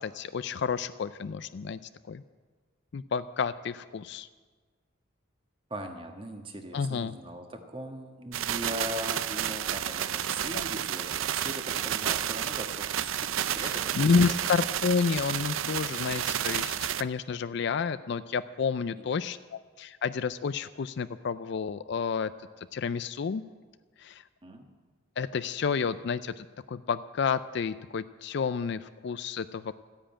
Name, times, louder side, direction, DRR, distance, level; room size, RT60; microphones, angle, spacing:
voice 1, 0.0-1.8 2.1-2.2 2.9-4.3 6.7-7.1 10.5-10.6 13.5-22.3 22.7-23.4 24.0-24.2 25.2-29.7, left 5 dB, 60° left, 13 dB, 0.4 m, -30 dB
voice 2, 5.7-14.4 19.0-19.1 24.4-24.7, equal, 25° right, 4 dB, 1.5 m, -40 dB
sound 1, 8.3-17.0, right 10 dB, 85° right, 0.5 m, -31 dB
14.0 x 10.0 x 8.8 m, 1.4 s
head